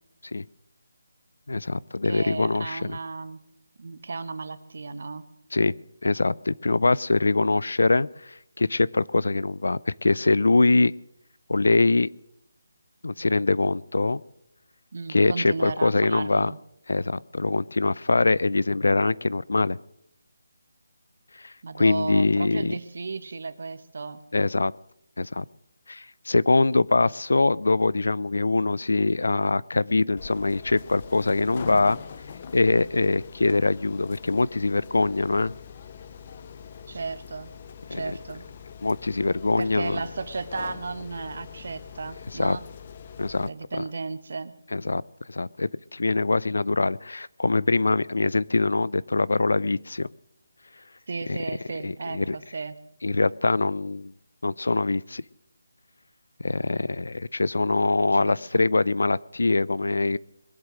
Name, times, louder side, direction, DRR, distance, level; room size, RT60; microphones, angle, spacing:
voice 1, 1.5-3.0 5.5-5.7 6.0-10.9 11.5-12.1 13.0-14.2 15.1-16.5 16.9-19.8 21.4-22.7 24.3-24.7 25.2-25.4 25.9-32.0 32.5-35.5 37.9-38.0 38.8-40.0 42.4-42.6 43.2-43.5 44.7-45.0 45.3-50.1 51.3-51.4 51.8-52.4 53.0-54.1 54.4-55.2 56.4-60.2, left 3 dB, 80° left, 21 dB, 0.4 m, -23 dB
voice 2, 2.0-3.4 3.8-5.2 14.9-16.6 21.6-24.2 36.9-37.5 37.9-38.4 39.6-42.6 43.4-44.5 51.1-52.8 58.1-58.7, right 4 dB, 50° right, 12 dB, 1.1 m, -34 dB
sound 1, 30.2-43.5, left 7 dB, 25° left, 0.5 m, -43 dB
21.5 x 8.0 x 6.3 m, 0.79 s
figure-of-eight pair, 175°, 0 cm